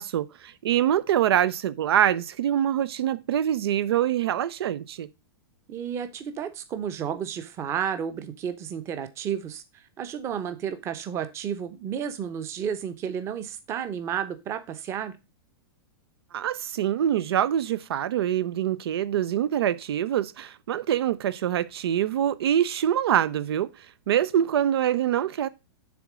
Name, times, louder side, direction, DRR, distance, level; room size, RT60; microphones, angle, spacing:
voice 1, 0.0-5.1 16.3-25.5, right 10 dB, 75° right, 0.6 m, -25 dB
voice 2, 5.7-9.6 10.0-15.1, right 8 dB, 20° right, 0.8 m, -32 dB
7.0 x 3.7 x 6.0 m
supercardioid pair, 160°, 13 cm